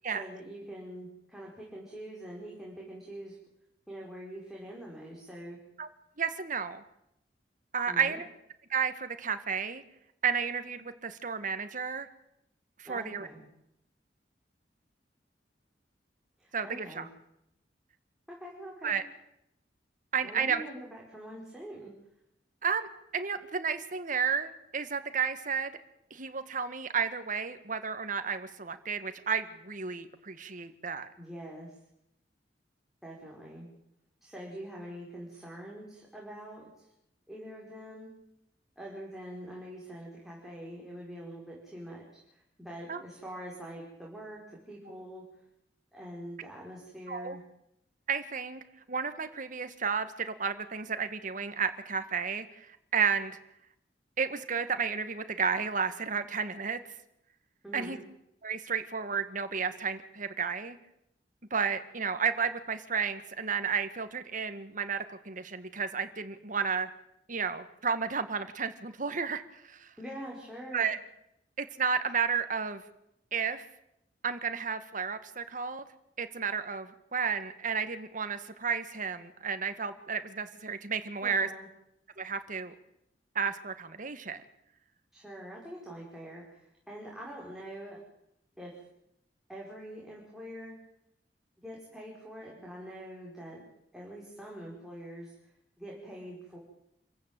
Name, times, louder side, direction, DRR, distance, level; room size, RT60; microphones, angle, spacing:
voice 1, 0.1-3.4 3.9-5.6 7.9-8.2 12.9-13.4 16.4-17.1 18.3-19.0 20.2-21.9 31.2-31.8 33.0-33.7 34.2-36.9 37.3-38.1 38.8-42.0 42.3-44.4 44.7-45.4 45.9-47.4 57.6-58.0 70.0-70.9 81.2-81.7 85.1-88.0 88.6-88.7 89.5-90.8 91.6-93.6 93.9-95.3 95.8-96.6, right 1 dB, ahead, -4 dB, 5.2 m, -44 dB
voice 2, 6.2-6.8 7.7-8.3 8.7-9.8 10.2-12.1 12.8-13.3 16.5-17.1 18.8-19.0 20.1-20.6 22.6-25.7 26.1-31.1 42.9-43.0 47.1-47.4 48.1-48.6 48.9-53.4 54.2-56.8 57.7-58.0 58.4-60.8 61.5-66.9 67.3-69.9 70.7-71.0 71.6-72.8 73.3-73.7 74.2-75.8 76.2-81.5 82.2-82.7 83.4-84.4, right 6 dB, 50° right, 9 dB, 1.8 m, -32 dB
27.5 x 15.0 x 9.0 m, 0.80 s
head